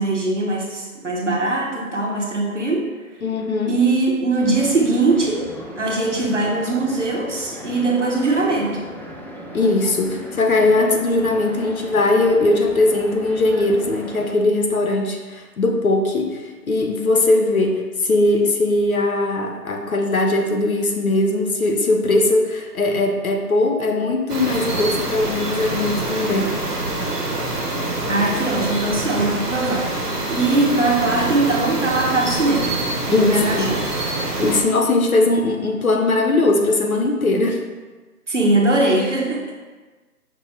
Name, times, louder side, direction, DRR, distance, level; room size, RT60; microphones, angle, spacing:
voice 1, 0.0-2.9 3.7-8.9 28.1-32.8 33.1-33.9 38.3-39.5, right 2 dB, 50° right, 0 dB, 0.6 m, -21 dB
voice 2, 3.2-3.7 9.5-26.5 33.1-33.7 34.4-37.6, left 2 dB, 65° left, 2 dB, 0.6 m, -19 dB
sound 1, 4.4-14.3, equal, 5° left, 0.3 m, -37 dB
sound 2, 24.3-34.6, right 2 dB, 85° right, 0.8 m, -25 dB
5.2 x 2.1 x 3.1 m, 1.3 s
figure-of-eight pair, 165°, 47 cm